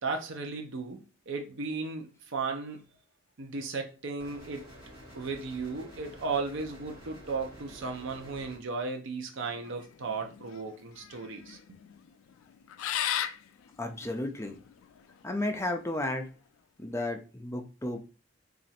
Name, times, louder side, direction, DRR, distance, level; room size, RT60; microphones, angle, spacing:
voice 1, 0.0-2.8 3.4-4.7 5.1-11.6, right 4 dB, 65° right, 0.6 m, -35 dB
sound 1, 4.2-8.6, equal, 25° right, 1.8 m, -50 dB
sound 2, 9.4-15.2, left 10 dB, 85° left, 0.3 m, -37 dB
voice 2, 13.8-14.6 15.2-16.3 16.8-18.0, left 1 dB, 15° left, 0.5 m, -33 dB
3.0 x 2.5 x 4.2 m
head